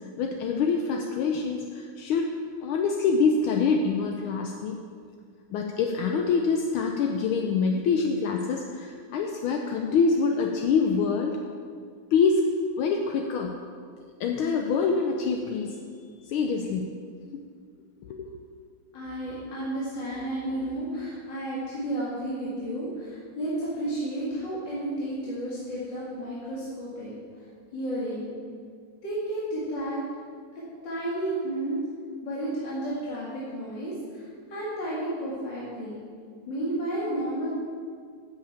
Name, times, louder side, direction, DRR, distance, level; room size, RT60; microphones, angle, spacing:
voice 1, 0.2-2.4 2.6-4.8 5.5-11.4 12.1-12.4 12.8-13.5 14.2-15.8 16.3-17.0 17.3-17.4 18.0-18.4, left 5 dB, 75° left, 2 dB, 1.5 m, -25 dB
voice 2, 18.9-27.4 27.7-28.3 29.0-30.0 30.5-31.8 32.2-36.0 36.5-37.5, right 1 dB, 55° left, -8 dB, 2.7 m, -32 dB
8.5 x 6.4 x 8.5 m, 2.1 s
omnidirectional pair, 2.4 m